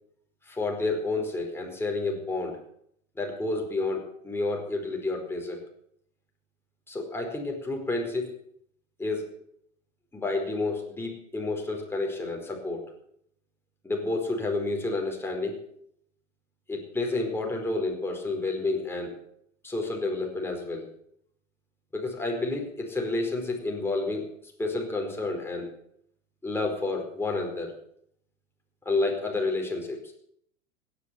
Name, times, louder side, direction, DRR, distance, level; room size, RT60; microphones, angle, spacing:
voice 1, 0.5-2.6 3.2-5.6 6.9-8.4 9.0-9.3 10.1-12.9 13.8-15.6 16.7-19.1 19.6-20.9 21.9-24.3 24.6-25.7 26.4-27.7 28.8-30.1, left 2 dB, 5° left, 0 dB, 4.7 m, -30 dB
17.0 x 10.5 x 7.0 m, 0.68 s
figure-of-eight pair, 100°, 37 cm